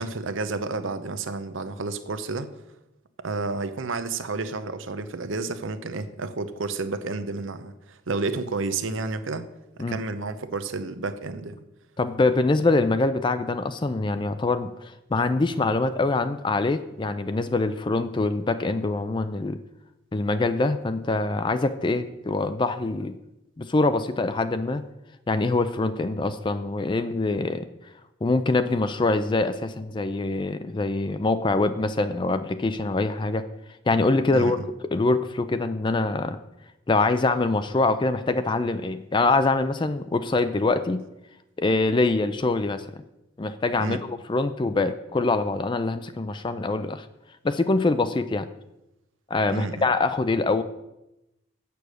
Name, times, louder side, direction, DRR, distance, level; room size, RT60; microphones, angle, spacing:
voice 1, 0.0-2.5 3.2-9.4 9.9-11.6 34.3-34.5 43.8-44.0 49.5-49.9, right 3 dB, 70° right, 11 dB, 0.7 m, -30 dB
voice 2, 12.0-19.6 20.1-23.2 23.6-24.8 25.3-27.7 28.2-33.4 33.9-34.6 34.9-36.4 36.9-41.0 41.6-42.9 43.4-47.1 47.4-48.5 49.3-50.6, left 3 dB, 25° left, 11 dB, 0.4 m, -24 dB
8.3 x 6.9 x 6.3 m, 0.91 s
head